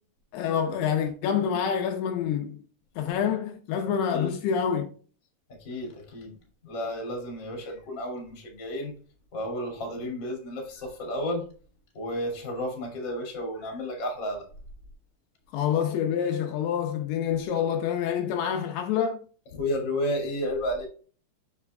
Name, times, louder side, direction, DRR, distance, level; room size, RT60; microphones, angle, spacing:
voice 1, 0.3-2.6 3.0-4.9 15.5-19.2, left 8 dB, 80° left, 2.8 m, -27 dB
voice 2, 5.6-6.3 6.6-8.9 9.3-11.4 11.9-14.5 19.5-20.9, left 1 dB, 35° left, 2.5 m, -32 dB
7.2 x 6.5 x 2.3 m
omnidirectional pair, 4.7 m